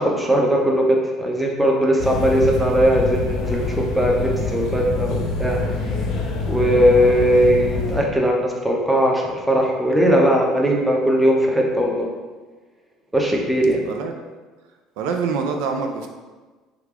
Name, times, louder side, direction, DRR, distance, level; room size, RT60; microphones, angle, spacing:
voice 1, 0.0-5.6 6.5-12.1 13.1-13.8, equal, 5° right, -1 dB, 0.6 m, -19 dB
sound 1, 2.0-8.0, left 3 dB, 60° left, 0.6 m, -25 dB
voice 2, 15.0-16.1, right 5 dB, 80° right, 4 dB, 0.3 m, -25 dB
3.2 x 2.3 x 3.5 m, 1.3 s
cardioid pair, 115°, 0 cm